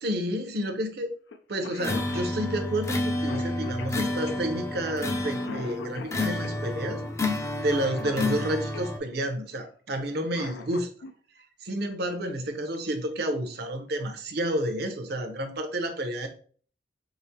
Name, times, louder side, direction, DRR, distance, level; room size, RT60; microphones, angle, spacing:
voice 1, 0.0-1.1 1.5-10.9 11.4-16.3, right 1 dB, 65° right, 5 dB, 0.7 m, -30 dB
Cough, 1.3-1.4 1.6-8.9 10.1-11.1 12.7-12.8 13.9-14.2 14.6-14.7 15.1-15.6, left 4 dB, 85° left, 0.4 m, -43 dB
sound 1, 1.8-9.0, left 2 dB, 15° left, 0.4 m, -30 dB
4.8 x 2.0 x 2.8 m, 0.44 s
head